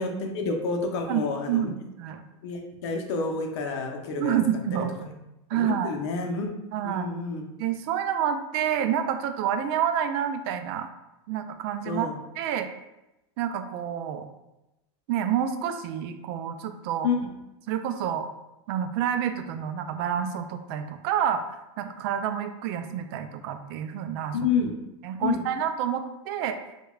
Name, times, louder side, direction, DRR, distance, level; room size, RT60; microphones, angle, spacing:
voice 1, 0.0-1.7 2.4-4.4 5.0-5.1 5.5-6.5 6.8-7.4 11.9-12.2 17.0-17.3 24.3-24.7 25.2-25.4, left 4 dB, 70° left, 3 dB, 0.7 m, -29 dB
voice 2, 1.1-2.2 4.2-5.0 5.5-5.9 6.7-7.1 7.6-10.9 11.3-12.1 12.4-12.7 13.4-14.3 15.1-17.1 17.7-18.3 18.7-24.4 25.0-26.6, right 9 dB, 55° right, 8 dB, 0.4 m, -28 dB
4.8 x 2.3 x 2.3 m, 0.93 s
supercardioid pair, 140°, 15 cm